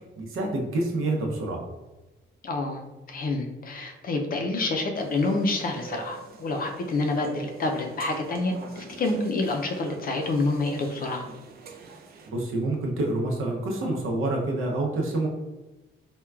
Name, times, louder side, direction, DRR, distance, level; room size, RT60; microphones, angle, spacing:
voice 1, 0.2-1.6 12.3-15.3, right 2 dB, 85° right, 0 dB, 0.7 m, -27 dB
voice 2, 2.4-2.8 3.1-11.3, left 2 dB, 45° left, 3 dB, 0.4 m, -28 dB
sound 1, 4.9-12.3, right 5 dB, 50° right, 0.4 m, -45 dB
4.4 x 2.2 x 2.3 m, 1.1 s
wide cardioid pair, 155°, 21 cm